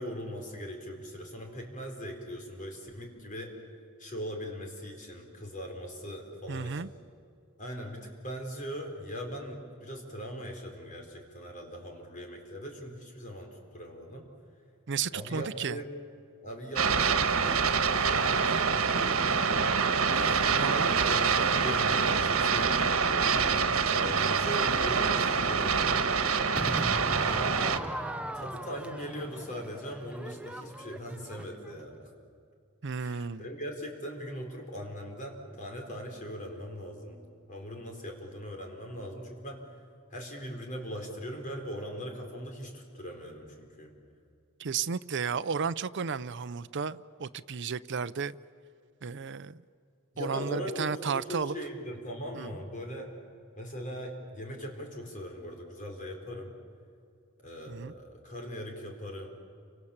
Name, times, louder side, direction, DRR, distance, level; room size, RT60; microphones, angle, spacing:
voice 1, 0.0-3.5 4.0-6.9 7.6-14.3 15.1-15.9 16.4-19.0 20.1-26.1 27.2-32.1 33.0-37.2 37.5-39.7 40.1-43.9 50.1-53.1 53.6-56.5 57.4-59.3, equal, 40° left, 2 dB, 4.7 m, -40 dB
voice 2, 6.5-6.9 14.9-15.8 20.6-20.9 32.8-33.4 44.6-48.4 49.0-49.6 50.2-51.5 52.3-52.5 57.7-57.9, right 6 dB, 60° right, 13 dB, 0.6 m, -33 dB
sound 1, 16.8-27.8, right 5 dB, 80° right, 1.5 m, -26 dB
Crowd / Fireworks, 26.5-31.8, right 1 dB, 5° right, 0.8 m, -39 dB
29.5 x 26.0 x 7.3 m, 2.4 s
head